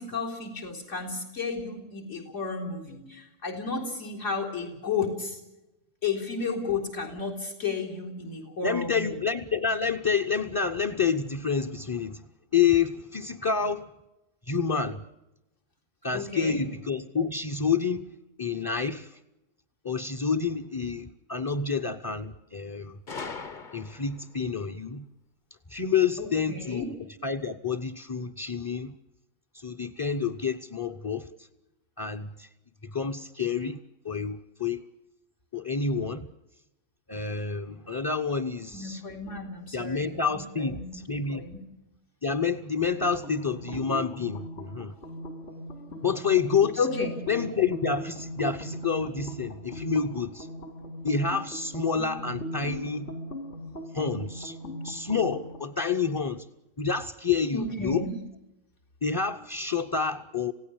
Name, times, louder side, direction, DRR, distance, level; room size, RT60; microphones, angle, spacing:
voice 1, 0.0-5.4 6.0-9.1 16.1-16.6 26.5-26.9 38.7-40.4 40.7-41.0 41.3-41.6 46.8-47.1 57.5-58.1, left 4 dB, 75° left, 4.2 m, -32 dB
voice 2, 8.6-12.3 12.5-13.9 14.5-15.0 16.0-19.2 19.8-23.0 23.7-25.1 25.7-26.9 27.2-28.9 29.5-31.3 32.0-32.5 32.8-33.8 34.0-34.8 35.5-36.3 37.1-39.0 39.7-41.4 42.2-44.9 46.0-46.8 47.3-50.5 51.0-53.1 53.9-54.6 54.8-56.5 56.8-58.1 59.0-60.5, left 5 dB, 20° left, 0.7 m, -28 dB
Gunshot gunfire, 23.1-24.3, left 4 dB, 40° left, 1.2 m, -39 dB
sound 1, 42.9-55.7, equal, 60° left, 3.6 m, -39 dB
27.5 x 17.0 x 8.7 m
omnidirectional pair, 1.3 m